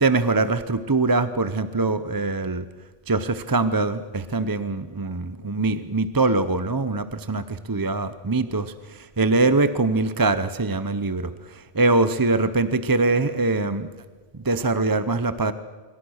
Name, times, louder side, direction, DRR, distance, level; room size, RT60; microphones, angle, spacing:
voice 1, 0.0-2.6 3.1-13.9 14.3-15.5, right 3 dB, 25° right, 12 dB, 0.7 m, -23 dB
26.0 x 23.5 x 6.5 m, 1.5 s
omnidirectional pair, 1.1 m